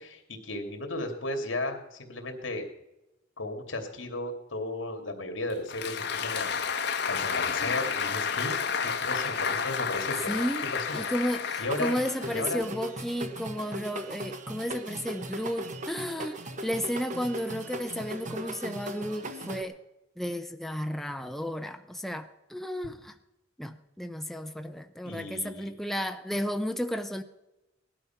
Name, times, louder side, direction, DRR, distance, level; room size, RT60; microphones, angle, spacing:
voice 1, 0.0-2.6 3.4-6.6 7.1-10.4 10.7-11.0 11.6-11.9 12.3-12.6 25.0-25.7, left 2 dB, 90° left, 2.6 m, -35 dB
Applause, 5.5-12.6, left 6 dB, 60° left, 1.1 m, -31 dB
voice 2, 10.3-19.8 20.2-23.1 23.6-27.2, equal, ahead, 0.7 m, -33 dB
sound 1, 11.7-19.6, right 1 dB, 40° right, 1.2 m, -38 dB
18.5 x 11.5 x 5.9 m
head